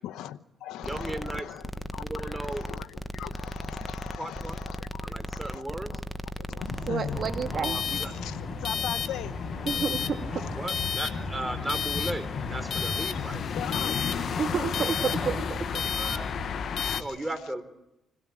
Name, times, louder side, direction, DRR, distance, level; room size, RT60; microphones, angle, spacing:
voice 1, 0.0-1.6 1.9-6.0 6.4-7.2 8.0-9.4 13.5-14.1 16.8-17.1, left 12 dB, 85° left, 0.9 m, -40 dB
sound 1, 0.8-7.6, equal, 5° left, 1.2 m, -37 dB
voice 2, 0.8-1.5 1.9-2.7 4.2-4.6 5.0-6.0 7.5-8.1 9.7-9.8 10.3-13.4 15.9-16.3 17.0-17.6, right 1 dB, 10° right, 3.9 m, -36 dB
sound 2, 6.6-17.0, left 2 dB, 35° left, 7.4 m, -37 dB
voice 3, 6.9-7.8 9.7-10.4 14.4-15.6, right 6 dB, 55° right, 2.0 m, -30 dB
sound 3, 7.1-17.0, left 7 dB, 60° left, 1.2 m, -32 dB
27.0 x 17.0 x 8.7 m
cardioid pair, 80°, 0 cm